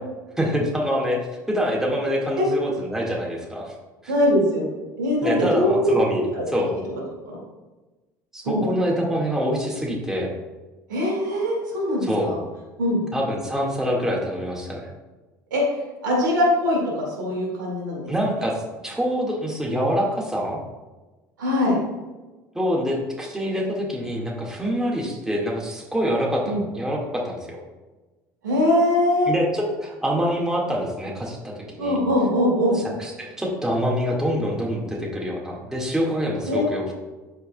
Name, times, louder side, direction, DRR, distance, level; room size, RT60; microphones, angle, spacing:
voice 1, 0.4-3.7 4.0-4.1 5.2-6.7 8.3-10.3 12.0-12.3 13.1-14.9 18.1-20.6 22.5-27.6 29.3-32.0 32.7-36.9, equal, 5° right, -3 dB, 2.0 m, -25 dB
voice 2, 4.1-6.5 7.0-7.4 8.4-8.6 10.9-12.4 12.8-13.0 15.5-15.6 16.0-18.1 21.4-21.8 26.5-26.6 28.4-29.3 31.8-32.8 36.5-36.6, left 1 dB, 80° right, -3 dB, 2.4 m, -22 dB
12.5 x 4.6 x 2.4 m, 1.2 s
figure-of-eight pair, 65°, 10 cm